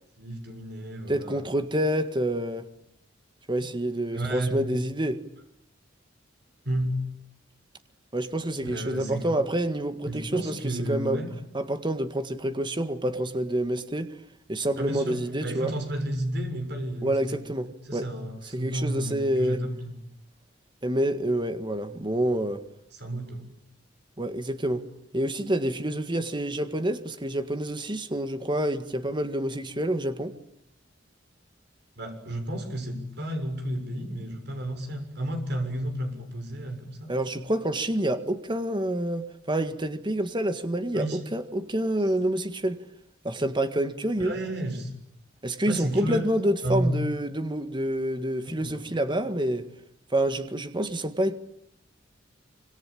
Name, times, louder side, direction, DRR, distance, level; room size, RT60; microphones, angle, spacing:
voice 1, 0.2-1.4 4.1-4.6 6.7-7.1 8.6-9.3 10.1-11.3 14.8-17.4 17.9-19.9 22.9-23.5 32.0-37.1 40.9-41.2 44.2-45.0 45.7-46.2 46.6-47.0 48.6-48.9, right 1 dB, 60° right, 6.9 m, -32 dB
voice 2, 1.1-2.7 3.5-5.2 8.1-11.2 11.5-14.2 14.5-15.8 17.0-18.1 18.5-19.6 20.8-22.7 24.2-24.9 25.1-30.4 37.1-42.8 43.2-44.3 45.4-49.7 50.1-51.4, right 1 dB, 25° right, 1.8 m, -28 dB
26.0 x 26.0 x 8.8 m
head